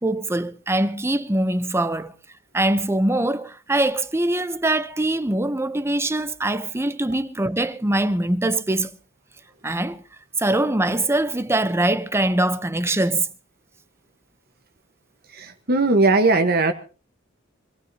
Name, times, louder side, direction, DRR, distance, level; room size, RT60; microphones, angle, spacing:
voice 1, 0.0-2.1 2.5-8.9 9.6-10.0 10.4-13.3, right 1 dB, 15° right, 0.7 m, -23 dB
voice 2, 15.3-16.7, right 3 dB, 50° right, 1.2 m, -18 dB
25.0 x 16.0 x 2.8 m
head